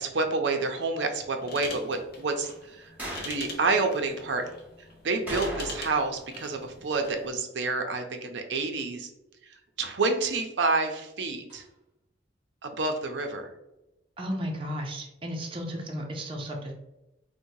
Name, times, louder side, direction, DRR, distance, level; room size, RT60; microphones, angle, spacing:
voice 1, 0.0-2.9 3.2-4.4 5.0-9.1 9.8-11.6 12.6-13.5, right 3 dB, 75° right, 5 dB, 0.5 m, -28 dB
sound 1, 1.4-7.3, left 3 dB, 55° left, 0.6 m, -44 dB
sound 2, 3.0-3.4 5.3-6.1 6.4-6.5 11.5-11.6, right 1 dB, 10° right, 0.9 m, -36 dB
voice 2, 14.2-16.7, equal, 30° right, 1 dB, 0.5 m, -34 dB
4.5 x 2.1 x 2.7 m, 0.92 s
head